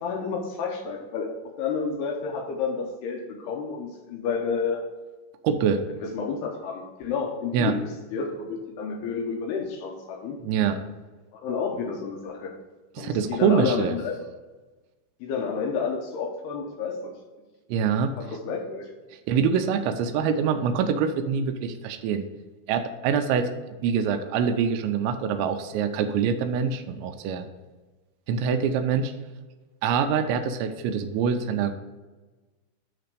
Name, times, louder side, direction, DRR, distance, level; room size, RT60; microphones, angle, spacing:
voice 1, 0.0-4.8 6.0-10.4 11.3-12.5 13.0-14.1 15.2-17.1 18.2-18.9, left 5 dB, 90° left, 1 dB, 2.2 m, -30 dB
voice 2, 5.4-5.8 7.5-7.7 10.4-10.8 13.0-14.0 17.7-18.1 19.3-22.2 22.7-23.5 23.8-27.5 28.3-29.1 29.8-31.8, right 6 dB, 85° right, 6 dB, 2.7 m, -25 dB
9.2 x 3.4 x 6.6 m, 1.2 s
omnidirectional pair, 5.8 m